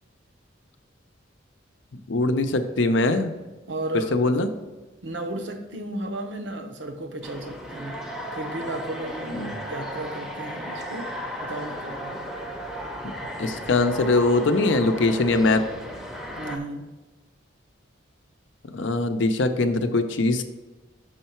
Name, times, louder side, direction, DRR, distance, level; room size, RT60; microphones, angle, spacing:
voice 1, 2.1-3.3 4.1-4.5 9.3-9.5 13.0-15.6 18.7-20.4, left 2 dB, 70° left, 8 dB, 0.6 m, -22 dB
voice 2, 3.7-4.3 5.0-8.0 8.3-11.1 11.4-12.2 16.4-16.9, right 1 dB, 70° right, 5 dB, 0.8 m, -34 dB
sound 1, 7.2-16.6, equal, ahead, 0.6 m, -35 dB
6.4 x 5.5 x 4.4 m, 1.2 s
head